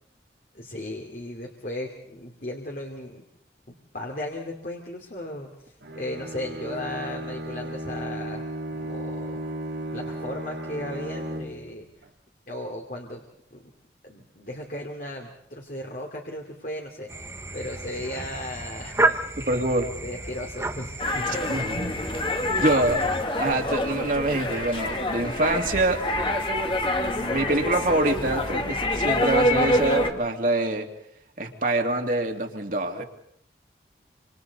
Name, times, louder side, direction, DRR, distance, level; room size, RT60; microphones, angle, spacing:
voice 1, 0.5-3.2 3.9-9.4 9.9-11.9 12.5-13.2 13.5-13.6 14.0-19.2 20.0-21.3, left 1 dB, 50° left, 0 dB, 2.7 m, -36 dB
Bowed string instrument, 5.8-11.8, right 1 dB, 90° right, 3.0 m, -35 dB
sound 1, 17.1-23.2, right 2 dB, 15° right, 1.0 m, -31 dB
voice 2, 19.5-19.9 21.5-21.9 22.6-23.0 23.4-26.0 27.0-30.9 31.4-33.0, right 2 dB, 50° right, 2 dB, 2.7 m, -25 dB
sound 2, 21.0-30.1, left 1 dB, 30° left, 1.8 m, -26 dB
28.0 x 26.5 x 4.2 m, 0.73 s
head